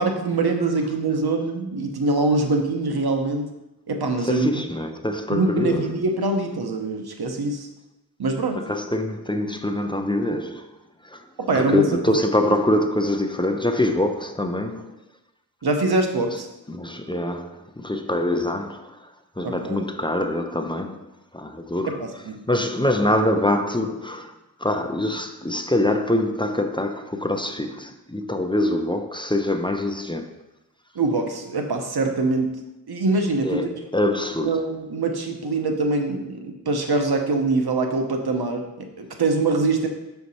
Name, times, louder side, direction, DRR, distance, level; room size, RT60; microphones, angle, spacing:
voice 1, 0.0-3.5 3.9-4.5 5.3-7.7 8.2-8.6 11.4-11.8 15.6-16.5 19.4-19.8 21.9-22.4 30.9-32.5 32.9-33.7 34.4-39.9, right 3 dB, 85° right, 0.9 m, -23 dB
voice 2, 4.2-6.0 8.6-10.7 11.0-11.2 11.5-14.9 16.7-19.0 19.4-21.1 21.3-22.0 22.5-24.3 24.6-30.4 33.4-34.6, left 1 dB, 15° left, 0.5 m, -24 dB
6.3 x 4.6 x 4.1 m
wide cardioid pair, 50°, 37 cm